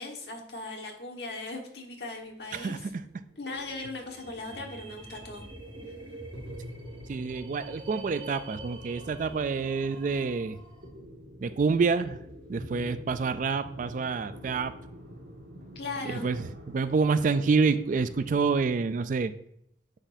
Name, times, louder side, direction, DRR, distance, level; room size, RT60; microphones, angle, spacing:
voice 1, 0.0-2.8 3.4-5.4 15.7-16.3, left 2 dB, 65° left, 1 dB, 1.4 m, -38 dB
sound 1, 2.3-19.0, equal, 75° right, 1.9 m, -47 dB
voice 2, 2.5-3.0 7.1-10.6 11.4-12.2 12.5-14.7 16.0-19.3, right 4 dB, 45° right, 13 dB, 0.3 m, -27 dB
sound 2, 3.9-10.9, right 2 dB, 30° right, 1.0 m, -46 dB
9.8 x 4.1 x 2.6 m, 0.72 s
head